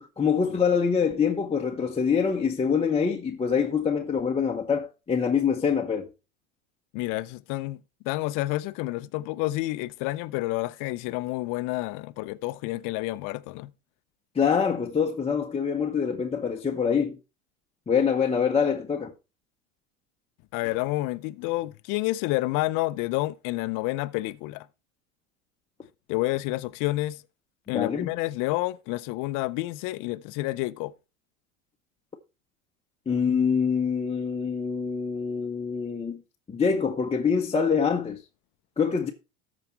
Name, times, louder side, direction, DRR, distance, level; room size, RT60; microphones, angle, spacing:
voice 1, 0.0-6.1 14.3-17.2 17.9-19.1 27.7-28.1 33.1-36.2 36.5-38.2 38.8-39.1, left 6 dB, 15° left, 0.9 m, -25 dB
voice 2, 6.9-7.8 8.0-13.7 20.5-24.7 26.1-27.2 27.7-30.9, left 19 dB, 50° left, 0.7 m, -29 dB
13.5 x 5.1 x 4.5 m
hypercardioid pair, 95°, 42 cm